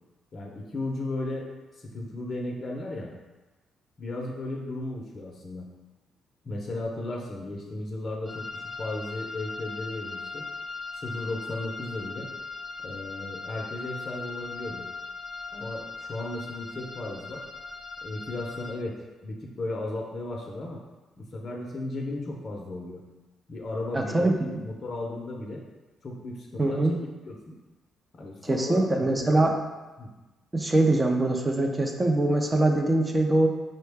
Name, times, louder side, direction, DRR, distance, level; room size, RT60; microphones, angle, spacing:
voice 1, 0.3-3.1 4.0-5.7 6.4-10.5 10.9-12.3 12.8-14.9 15.5-17.4 18.0-20.8 21.2-23.0 23.5-25.6 26.0-26.8 27.2-27.6 28.1-29.3 30.0-30.1, left 2 dB, 45° left, -1 dB, 0.6 m, -35 dB
sound 1, 8.2-18.7, left 4 dB, 10° left, 0.8 m, -39 dB
voice 2, 23.9-24.6 26.6-27.0 28.4-29.5 30.5-33.5, right 2 dB, 20° right, 2 dB, 0.5 m, -23 dB
5.5 x 2.1 x 3.4 m, 1.2 s
cardioid pair, 90°, 0 cm